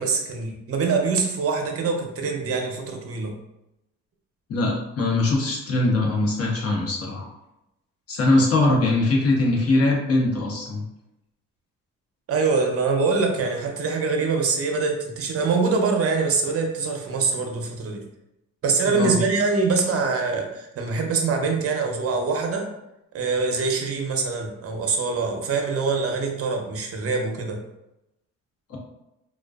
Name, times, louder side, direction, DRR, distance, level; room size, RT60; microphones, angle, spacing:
voice 1, 0.0-3.3 12.3-18.0 18.6-22.7 23.1-27.6, right 4 dB, 50° right, 3 dB, 0.6 m, -24 dB
voice 2, 4.5-7.3 8.1-10.8 18.9-19.2 28.7-28.8, left 2 dB, 50° left, -1 dB, 0.8 m, -21 dB
2.5 x 2.2 x 2.3 m, 0.89 s
cardioid pair, 90°, 30 cm